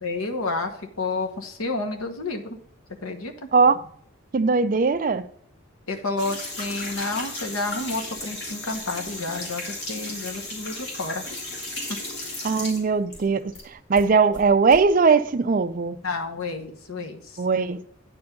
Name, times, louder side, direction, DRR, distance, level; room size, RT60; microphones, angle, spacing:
voice 1, 0.0-2.6 3.0-3.5 5.9-11.2 11.9-12.0 16.0-17.4, left 3 dB, 85° left, 1.1 m, -30 dB
voice 2, 4.3-5.3 12.4-16.0 17.4-17.8, right 4 dB, 40° right, 0.4 m, -20 dB
sound 1, 6.2-13.7 14.0-14.8, left 1 dB, 50° left, 2.3 m, -35 dB
9.3 x 4.7 x 5.2 m
head